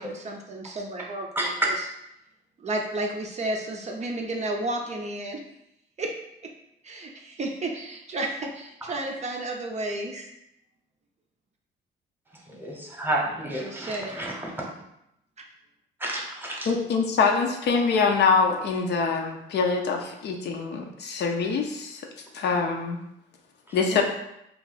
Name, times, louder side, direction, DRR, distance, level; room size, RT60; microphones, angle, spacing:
voice 1, 0.0-1.5 2.6-5.4 6.0-6.1 6.4-6.5 6.8-10.3 13.6-14.2 23.9-24.0, right 2 dB, 35° right, 1 dB, 0.5 m, -32 dB
voice 2, 1.3-1.7 8.8-8.9 12.5-14.7 16.0-16.7 23.7-23.8, right 1 dB, 10° right, -2 dB, 0.9 m, -30 dB
voice 3, 16.7-22.0 22.3-23.0 23.7-24.0, left 5 dB, 60° left, 2 dB, 0.5 m, -24 dB
2.6 x 2.3 x 3.9 m, 0.81 s
cardioid pair, 85°, 20 cm